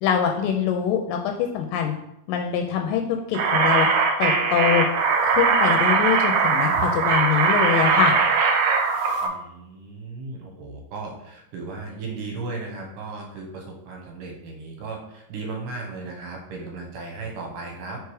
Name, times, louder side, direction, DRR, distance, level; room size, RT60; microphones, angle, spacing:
voice 1, 0.0-1.9 2.3-3.9 4.2-4.9 5.2-8.1, left 8 dB, 85° left, 4 dB, 2.2 m, -24 dB
sound 1, 3.3-9.3, right 5 dB, 90° right, 1.5 m, -20 dB
voice 2, 9.2-18.0, right 3 dB, 75° right, 1 dB, 2.6 m, -36 dB
4.8 x 4.6 x 4.7 m, 0.79 s
omnidirectional pair, 4.0 m